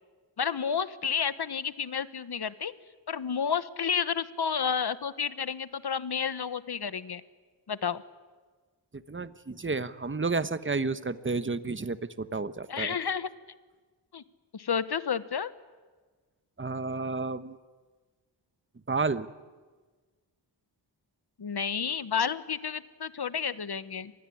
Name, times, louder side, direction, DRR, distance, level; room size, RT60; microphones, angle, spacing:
voice 1, 0.4-2.7 3.1-7.2 7.7-8.0 12.7-13.3 14.1-14.2 14.5-15.5 21.4-24.1, left 7 dB, 60° left, 15 dB, 1.2 m, -31 dB
voice 2, 8.9-13.0 16.6-17.6 18.9-19.3, right 4 dB, 25° right, 13 dB, 1.1 m, -31 dB
26.0 x 20.5 x 9.9 m, 1.4 s
wide cardioid pair, 75°, 44 cm